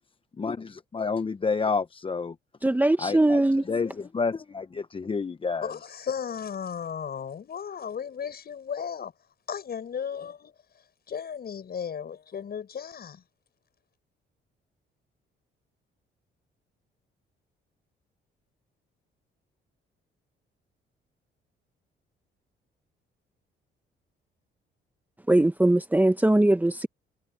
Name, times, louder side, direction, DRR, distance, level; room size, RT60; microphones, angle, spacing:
voice 1, 0.4-2.3 3.0-3.4 3.7-5.7, left 4 dB, 25° left, 0.7 m, -29 dB
voice 2, 2.6-3.6 25.3-26.9, right 1 dB, 10° right, 1.0 m, -21 dB
voice 3, 5.6-9.1 9.5-10.5 11.1-13.2, left 7 dB, 50° left, 7.0 m, -35 dB
cardioid pair, 90°, 20 cm